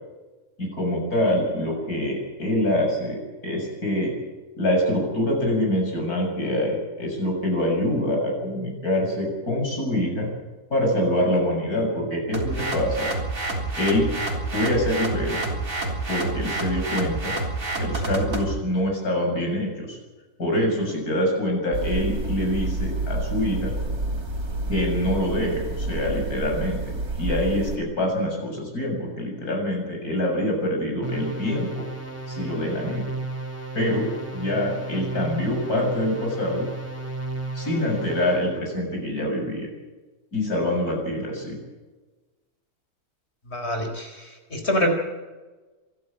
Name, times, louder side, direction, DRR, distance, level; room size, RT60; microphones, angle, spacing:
voice 1, 0.6-4.1 4.6-10.3 10.7-13.1 13.8-14.1 14.5-15.4 16.1-17.3 17.8-20.0 20.4-23.7 24.7-26.8 27.2-31.8 32.3-33.1 33.7-36.7 37.5-39.7 40.3-41.6, left 1 dB, 80° left, 0 dB, 7.7 m, -25 dB
sound 1, 12.3-18.5, right 2 dB, 60° right, 4.2 m, -28 dB
sound 2, 21.7-27.8, right 2 dB, 85° right, 4.5 m, -29 dB
sound 3, 31.0-38.6, right 2 dB, 10° right, 3.3 m, -34 dB
voice 2, 43.5-44.1 44.5-44.9, equal, 45° left, 4 dB, 4.7 m, -24 dB
27.0 x 12.5 x 8.7 m, 1.2 s
omnidirectional pair, 1.6 m